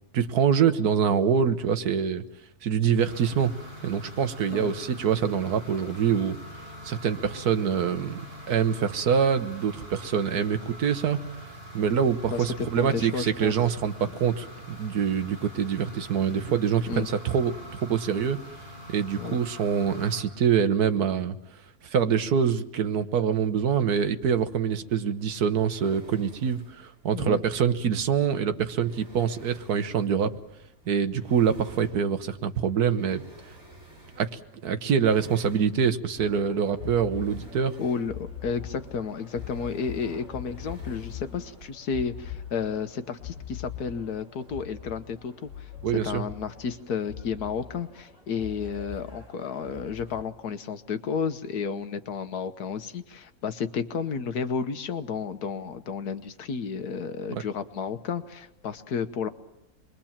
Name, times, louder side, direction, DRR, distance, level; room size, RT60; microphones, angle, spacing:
voice 1, 0.1-2.2 2.6-3.5 3.8-6.4 6.8-8.2 8.5-11.2 11.7-18.4 18.9-21.4 21.8-30.3 30.9-33.2 34.2-37.8 45.8-46.2 57.4-57.5, right 7 dB, 85° right, 10 dB, 1.6 m, -25 dB
sound 1, 3.0-20.2, equal, 25° right, 7.5 m, -44 dB
voice 2, 12.3-13.5 16.9-17.1 19.2-19.4 27.1-27.4 37.8-45.7 46.0-59.3, left 6 dB, 85° left, 10 dB, 1.6 m, -32 dB
sound 2, 24.7-41.7, right 1 dB, 45° right, 6.4 m, -52 dB
sound 3, 36.2-50.2, left 9 dB, 40° left, 7.7 m, -42 dB
27.0 x 22.0 x 7.4 m, 0.91 s
omnidirectional pair, 1.6 m